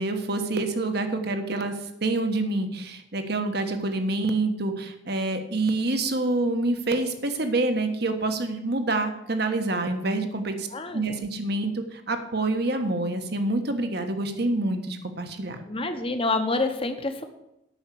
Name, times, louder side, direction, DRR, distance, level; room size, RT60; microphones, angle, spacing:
voice 1, 0.0-10.7 10.9-15.6, right 2 dB, 55° right, 6 dB, 1.3 m, -27 dB
voice 2, 10.7-11.2 15.7-17.2, left 2 dB, 30° left, 7 dB, 1.1 m, -27 dB
8.8 x 6.5 x 8.4 m, 0.86 s
head